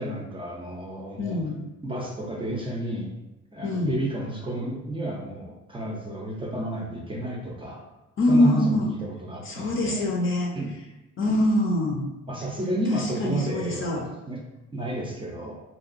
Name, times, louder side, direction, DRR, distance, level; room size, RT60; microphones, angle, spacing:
voice 1, 0.0-1.4 1.8-3.1 3.5-7.8 8.3-10.1 10.5-10.7 12.3-14.4 14.7-15.6, right 1 dB, 15° right, -3 dB, 0.5 m, -31 dB
voice 2, 1.2-1.6 3.6-4.0 8.2-8.9 9.4-10.5 11.2-12.0 12.9-14.1, left 1 dB, 40° left, -1 dB, 0.6 m, -24 dB
2.8 x 2.2 x 2.4 m, 0.97 s
cardioid pair, 90°, 30 cm